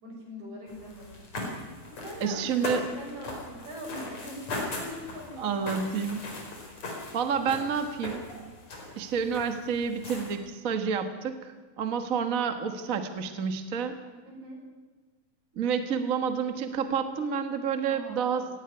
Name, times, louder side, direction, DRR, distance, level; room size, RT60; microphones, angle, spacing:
voice 1, 0.0-1.1 1.9-5.5 14.3-14.6 17.9-18.5, equal, 70° right, -1 dB, 8.0 m, -42 dB
sound 1, 0.7-10.4, left 2 dB, 60° left, 5.7 m, -39 dB
voice 2, 2.2-2.8 5.4-6.3 7.1-8.3 8.9-14.0 15.5-18.5, right 6 dB, 40° right, 7 dB, 1.3 m, -29 dB
18.5 x 17.0 x 9.8 m, 1.3 s
omnidirectional pair, 3.5 m